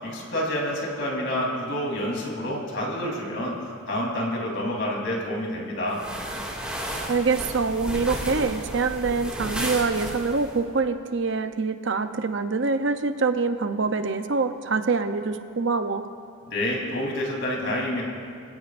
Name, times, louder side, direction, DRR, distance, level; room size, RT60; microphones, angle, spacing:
voice 1, 0.0-3.5 3.9-6.0 16.5-18.0, left 1 dB, 55° left, -2 dB, 3.5 m, -28 dB
sound 1, 5.9-10.6, right 1 dB, 5° right, 2.2 m, -33 dB
voice 2, 7.1-16.1, right 4 dB, 55° right, 8 dB, 0.7 m, -25 dB
26.5 x 17.0 x 2.6 m, 2.3 s
head